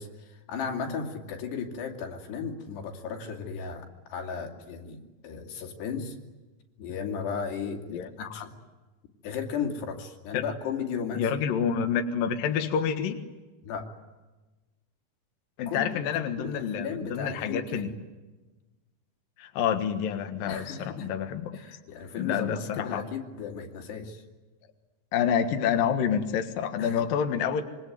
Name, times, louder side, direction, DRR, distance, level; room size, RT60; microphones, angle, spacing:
voice 1, 0.0-6.2 6.8-8.5 9.2-11.3 11.5-11.6 13.6-13.9 15.7-17.9 20.4-21.1 21.5-24.2 26.8-27.0, left 6 dB, 90° left, 3 dB, 4.9 m, -35 dB
voice 2, 7.9-8.5 10.3-10.4 11.1-13.2 15.6-17.9 19.4-21.5 22.2-23.0 25.1-27.6, left 8 dB, 65° left, 6 dB, 3.1 m, -28 dB
26.0 x 24.5 x 9.4 m, 1.2 s
omnidirectional pair, 4.7 m